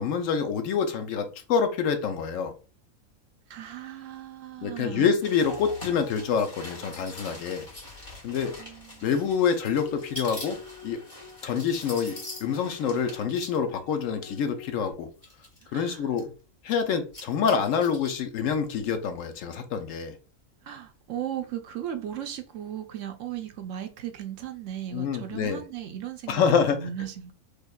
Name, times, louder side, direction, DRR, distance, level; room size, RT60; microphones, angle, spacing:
voice 1, 0.0-2.5 4.6-7.6 8.2-8.6 9.0-10.6 10.8-11.0 11.4-15.1 15.7-16.3 16.6-20.2 24.9-25.6 26.3-26.8, left 6 dB, 70° left, 0.9 m, -26 dB
voice 2, 3.5-5.1 8.6-9.4 15.6-16.1 20.6-27.3, right 10 dB, 70° right, 0.9 m, -37 dB
sound 1, 5.2-13.6 14.4-14.5 15.2-16.2 16.9-18.2 18.5-18.6, left 1 dB, 25° left, 1.3 m, -44 dB
sound 2, 5.4-6.9, right 2 dB, 5° right, 0.8 m, -45 dB
sound 3, 9.2-14.9, left 5 dB, 40° left, 0.4 m, -47 dB
4.9 x 2.2 x 2.3 m
omnidirectional pair, 1.4 m